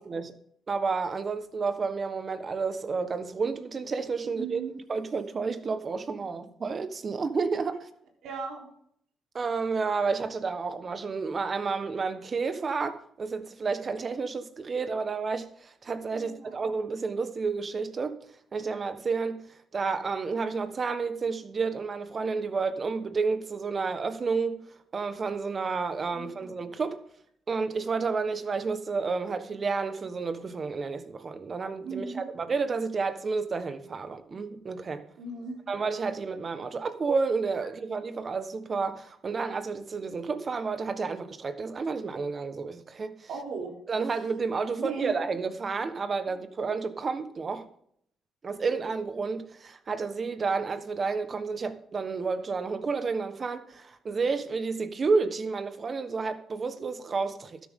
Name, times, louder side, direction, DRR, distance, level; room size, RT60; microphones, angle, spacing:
voice 1, 0.7-4.6 4.9-7.9 9.3-18.2 18.5-24.6 24.9-27.0 27.5-35.0 35.7-43.3 43.9-47.7 48.4-57.6, right 4 dB, 40° right, 1.4 m, -30 dB
voice 2, 4.4-4.7 8.2-8.7 16.1-16.5 26.1-26.5 31.8-32.3 35.2-35.6 43.3-43.7 44.8-45.1, right 5 dB, 80° right, 3.9 m, -36 dB
13.0 x 11.5 x 3.8 m
cardioid pair, 90°, 0 cm